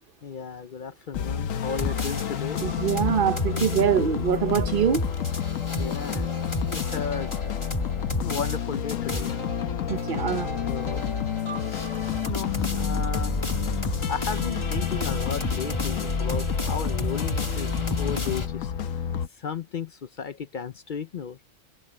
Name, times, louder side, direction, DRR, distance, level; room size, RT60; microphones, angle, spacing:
voice 1, 0.2-2.6 5.8-6.3 6.7-7.3 8.2-9.6 10.7-11.1 12.2-13.3 13.8-18.7 19.4-21.4, left 6 dB, 50° left, 0.6 m, -34 dB
sound 1, 1.1-19.3, left 9 dB, 85° left, 1.3 m, -30 dB
sound 2, 1.7-18.5, left 1 dB, 20° left, 1.7 m, -32 dB
voice 2, 2.6-5.1 9.9-10.5, right 8 dB, 50° right, 0.9 m, -24 dB
omnidirectional pair, 1.3 m